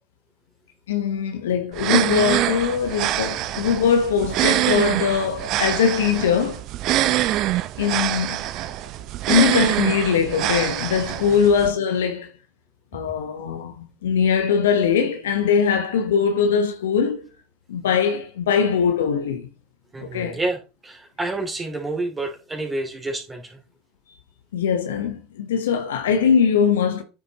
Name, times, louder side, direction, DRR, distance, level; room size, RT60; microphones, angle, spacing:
voice 1, 0.9-6.6 7.8-8.4 9.3-12.3 12.9-17.3 17.7-19.5 20.0-20.4 24.5-27.0, left 7 dB, 85° left, 1.0 m, -21 dB
sound 1, 1.7-11.7, right 14 dB, 55° right, 0.6 m, -24 dB
voice 2, 6.9-7.3 11.3-11.4 19.9-23.6, right 2 dB, 20° right, 2.6 m, -29 dB
9.5 x 6.8 x 2.9 m
hypercardioid pair, 80°, 0 cm